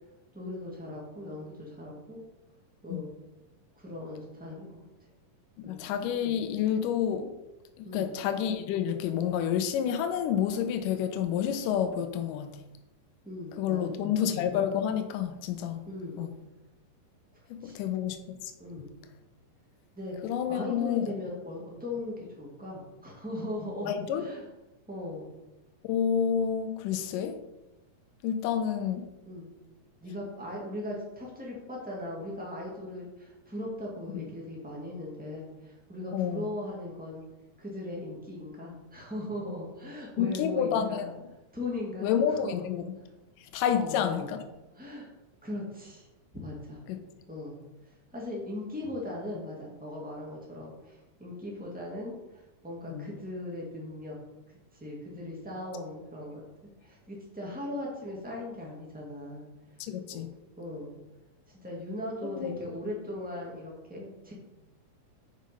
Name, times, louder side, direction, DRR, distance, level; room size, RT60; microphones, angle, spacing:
voice 1, 0.3-2.2 2.8-3.1 3.7-4.7 5.6-5.8 7.8-8.1 13.2-14.1 15.8-16.2 17.6-17.8 18.6-18.9 19.9-20.1 20.5-24.5 24.9-25.3 29.2-29.5 30.0-37.2 37.6-41.1 41.5-42.5 43.7-44.3 44.8-45.1 45.4-46.1 46.3-46.8 47.3-47.6 48.1-52.1 52.6-54.1 54.7-56.4 56.8-59.4 60.1-60.3 60.6-60.9 61.5-64.3, left 1 dB, 5° right, -3 dB, 0.9 m, -38 dB
voice 2, 5.6-7.3 7.8-12.6 13.6-15.8 16.2-16.3 17.5-18.5 20.2-21.1 23.9-24.2 25.9-27.4 28.2-29.1 36.1-36.5 40.2-41.1 42.0-42.9 43.5-44.4 46.9-47.0 52.9-53.1 59.8-60.3 62.3-62.6, left 8 dB, 85° left, 8 dB, 2.2 m, -29 dB
7.6 x 5.2 x 5.0 m, 1.0 s
omnidirectional pair, 3.9 m